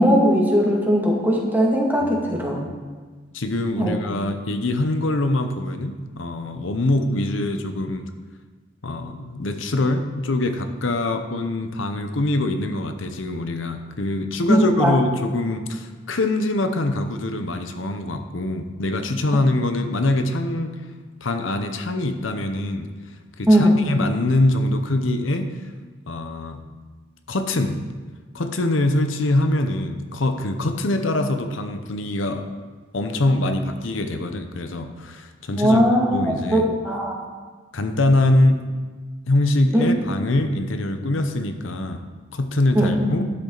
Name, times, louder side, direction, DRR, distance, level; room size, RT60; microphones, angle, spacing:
voice 1, 0.0-2.6 3.8-4.0 14.5-15.0 23.5-23.8 35.6-36.2 36.5-37.2 39.7-39.9 42.7-43.1, equal, 10° right, -3 dB, 2.1 m, -18 dB
voice 2, 2.0-2.6 3.3-8.1 8.8-20.8 21.2-22.9 23.4-25.6 26.1-26.6 27.3-27.8 28.3-32.5 32.9-35.8 36.1-36.7 37.7-38.6 39.3-42.0 42.3-43.2, left 2 dB, 80° left, 7 dB, 0.9 m, -23 dB
12.0 x 10.0 x 4.0 m, 1.4 s
head